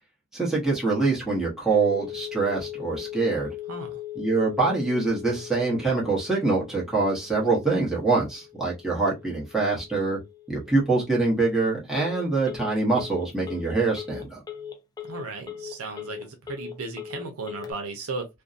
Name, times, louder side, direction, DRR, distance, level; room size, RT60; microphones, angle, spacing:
voice 1, 0.3-3.5 4.2-10.2 10.5-14.4, right 3 dB, ahead, 0.9 m, -24 dB
Telephone, 1.7-17.7, left 11 dB, 20° left, 0.4 m, -40 dB
voice 2, 3.7-4.0 15.0-18.3, right 3 dB, 75° right, 0.6 m, -35 dB
2.6 x 2.2 x 2.4 m
head